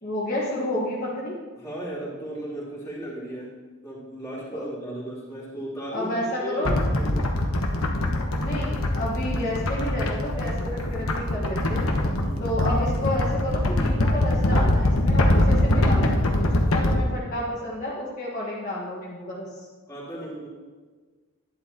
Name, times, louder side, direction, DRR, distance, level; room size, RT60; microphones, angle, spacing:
voice 1, 0.0-1.3 4.5-4.6 5.9-6.7 8.4-11.9 12.4-19.5, left 1 dB, 40° left, -7 dB, 1.6 m, -30 dB
voice 2, 1.6-3.5 3.8-7.2 12.2-12.5 19.9-20.5, right 1 dB, 15° left, -8 dB, 3.1 m, -35 dB
sound 1, 6.7-16.9, left 1 dB, 80° left, 1.1 m, -23 dB
11.5 x 10.5 x 2.9 m, 1.4 s
head